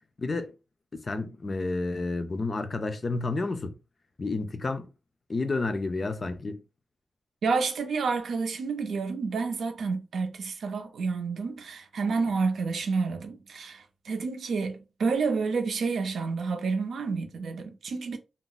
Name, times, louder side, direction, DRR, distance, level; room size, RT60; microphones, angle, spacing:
voice 1, 0.2-0.5 0.9-3.7 4.2-4.9 5.3-6.6, left 3 dB, 35° left, 0.4 m, -30 dB
voice 2, 7.4-18.2, right 4 dB, 90° right, 0.5 m, -29 dB
2.4 x 2.0 x 3.8 m
wide cardioid pair, 175°, 0 cm